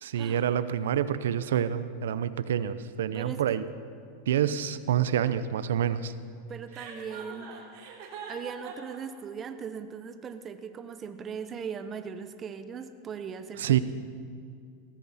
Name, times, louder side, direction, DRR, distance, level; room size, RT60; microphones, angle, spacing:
voice 1, 0.0-3.6 4.3-6.1 13.6-13.8, right 10 dB, 85° right, 14 dB, 0.6 m, -27 dB
voice 2, 3.1-3.6 6.5-7.7 8.3-13.8, right 6 dB, 25° right, 10 dB, 0.7 m, -39 dB
Chuckle chortle, 6.7-9.0, right 6 dB, 60° right, 3.2 m, -42 dB
17.0 x 14.5 x 4.2 m, 2.3 s
supercardioid pair, 130°, 0 cm